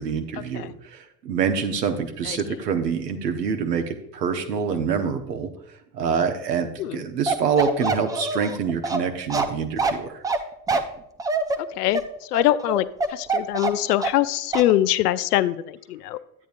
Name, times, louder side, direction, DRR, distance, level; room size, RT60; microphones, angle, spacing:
voice 1, 0.0-5.5 5.9-10.2, right 6 dB, 75° right, 6 dB, 1.1 m, -26 dB
Bark, 7.3-14.3 14.5-14.7, right 3 dB, 10° right, 0.3 m, -25 dB
voice 2, 11.6-12.0 12.3-16.2, left 14 dB, 70° left, 16 dB, 0.5 m, -23 dB
11.0 x 9.1 x 2.5 m, 0.75 s
figure-of-eight pair, 65°, 49 cm